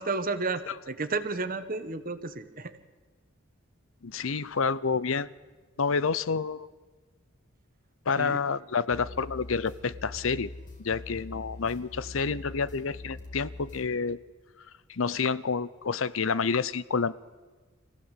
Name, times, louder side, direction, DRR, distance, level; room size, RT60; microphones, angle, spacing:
voice 1, 0.0-2.8 8.2-8.4, right 3 dB, 40° right, 10 dB, 1.5 m, -32 dB
voice 2, 4.0-5.3 5.8-6.7 8.1-10.5 10.8-14.2 14.9-17.1, left 5 dB, 65° left, 18 dB, 0.7 m, -29 dB
sound 1, 8.9-13.9, left 2 dB, 40° left, 3.6 m, -43 dB
26.0 x 16.0 x 8.3 m, 1.4 s
head